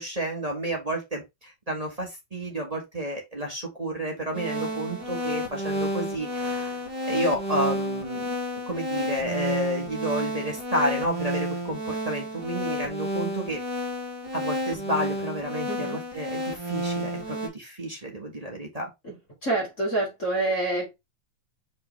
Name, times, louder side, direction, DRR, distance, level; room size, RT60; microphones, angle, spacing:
voice 1, 0.0-6.8 7.1-8.4 8.7-13.6 14.3-18.9, equal, 20° right, 1.0 m, -31 dB
sound 1, 4.3-17.5, equal, 35° right, 2.2 m, -31 dB
voice 2, 15.7-16.0 19.0-19.1 19.4-20.9, right 2 dB, 25° left, 2.9 m, -27 dB
5.5 x 5.2 x 3.4 m
omnidirectional pair, 3.4 m